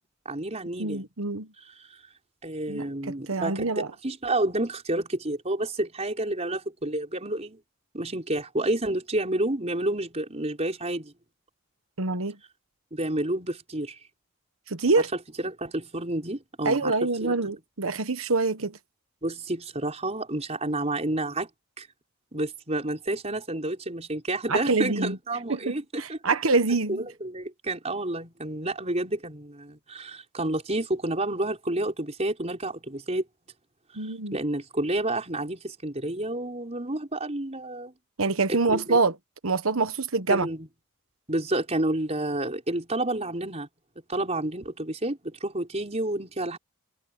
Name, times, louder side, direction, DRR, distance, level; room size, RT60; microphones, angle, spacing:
voice 1, 0.3-1.1 2.4-7.6 7.9-11.1 12.9-14.0 15.4-17.3 19.2-21.5 21.8-21.9 22.3-26.2 26.9-33.3 34.0-37.9 38.5-39.0 40.3-40.7 41.3-43.7 44.1-46.6, right 1 dB, 30° right, 5.2 m, -30 dB
voice 2, 0.8-1.5 2.7-3.9 12.0-12.4 14.7-15.1 16.6-18.8 24.5-25.2 25.5-27.0 33.9-34.4 38.2-39.1 39.4-40.5, right 3 dB, 75° right, 1.3 m, -25 dB
head